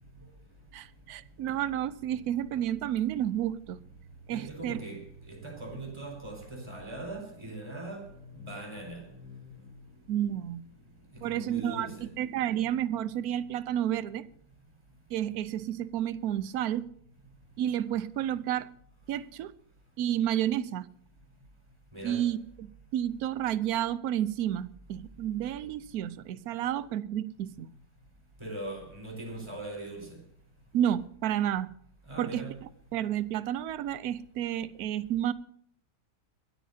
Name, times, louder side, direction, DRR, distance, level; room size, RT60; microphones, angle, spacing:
voice 1, 0.7-3.8 4.3-4.8 10.1-10.6 11.2-11.9 12.2-14.3 15.1-16.9 17.6-18.7 19.1-19.5 20.0-20.9 22.0-27.7 30.7-31.7 32.2-35.3, right 11 dB, 65° right, 1.1 m, -31 dB
voice 2, 4.3-9.7 11.1-12.1 21.9-22.3 28.4-30.2 32.1-32.6, right 2 dB, 15° right, 4.8 m, -41 dB
23.0 x 13.5 x 2.8 m
omnidirectional pair, 1.8 m